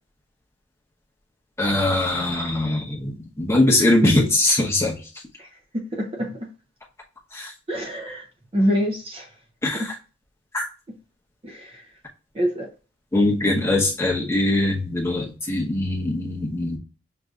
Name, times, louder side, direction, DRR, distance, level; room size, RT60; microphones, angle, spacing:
voice 1, 1.6-5.0 7.3-7.5 9.6-9.9 10.5-10.7 13.1-16.8, left 1 dB, 10° left, 0.8 m, -21 dB
voice 2, 5.7-6.5 7.7-8.3 8.5-9.3 9.7-9.9 11.4-11.8 12.3-12.7, equal, 25° right, 0.5 m, -26 dB
6.3 x 2.6 x 2.3 m
head